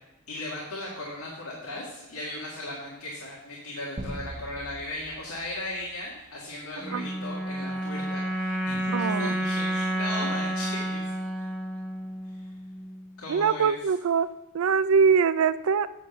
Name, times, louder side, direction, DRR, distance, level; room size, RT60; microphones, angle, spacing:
voice 1, 0.3-11.1 12.3-12.5 13.2-13.7, left 1 dB, 70° left, -4 dB, 1.9 m, -37 dB
sound 1, 4.0-6.8, right 1 dB, 20° right, 1.0 m, -42 dB
sound 2, 6.8-13.2, right 1 dB, 5° left, 1.3 m, -30 dB
voice 2, 8.9-9.3 13.3-14.3 14.5-15.9, right 6 dB, 65° right, 15 dB, 0.4 m, -23 dB
9.7 x 3.7 x 7.2 m, 1.0 s
head